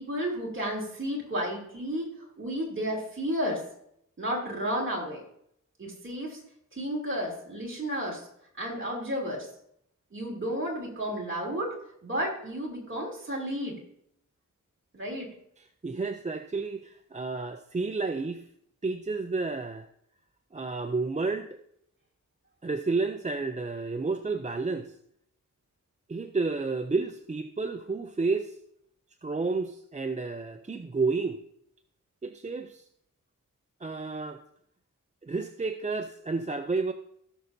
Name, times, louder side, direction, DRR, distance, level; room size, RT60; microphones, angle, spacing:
voice 1, 0.0-3.6 4.2-5.2 5.8-6.4 6.7-8.3 8.6-9.5 10.1-11.8 12.0-13.8 14.9-15.3, equal, 40° right, -1 dB, 3.0 m, -32 dB
voice 2, 15.8-18.4 18.8-19.9 20.5-21.5 22.6-24.9 26.1-28.6 29.2-31.4 32.2-32.8 33.8-34.4 35.2-36.9, right 3 dB, 20° right, 6 dB, 0.5 m, -31 dB
17.0 x 6.5 x 2.7 m, 0.71 s
wide cardioid pair, 100°, 32 cm